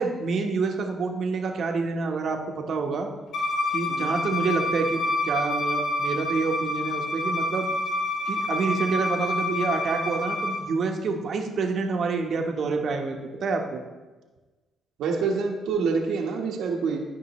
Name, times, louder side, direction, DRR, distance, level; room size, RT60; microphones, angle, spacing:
voice 1, 0.0-3.1 3.7-7.7 8.3-13.8, right 4 dB, 55° right, 3 dB, 1.0 m, -27 dB
Bowed string instrument, 3.3-10.6, left 2 dB, 75° left, 1.6 m, -28 dB
voice 2, 15.0-17.0, right 5 dB, 80° right, 1 dB, 1.1 m, -26 dB
12.5 x 5.3 x 3.1 m, 1.2 s
cardioid pair, 90°, 0 cm